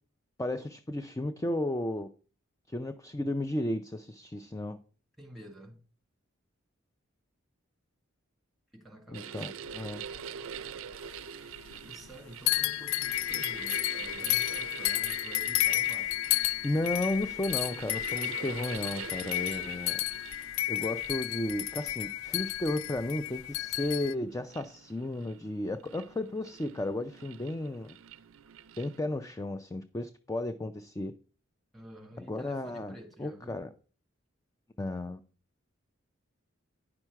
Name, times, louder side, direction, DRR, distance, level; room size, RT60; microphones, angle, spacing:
voice 1, 0.4-2.1 2.7-4.8 9.1-10.0 16.6-20.0 20.7-28.0 28.8-31.1 32.2-32.9 33.2-33.7 34.8-35.2, left 1 dB, 15° left, 0.4 m, -34 dB
voice 2, 5.2-5.8 8.7-9.5 11.8-16.1 31.7-33.6, equal, ahead, 1.7 m, -49 dB
sound 1, 9.1-29.0, right 8 dB, 75° right, 0.5 m, -45 dB
sound 2, 9.7-11.2 11.5-12.2 12.5-24.1, left 16 dB, 80° left, 0.3 m, -32 dB
9.8 x 6.0 x 4.5 m
head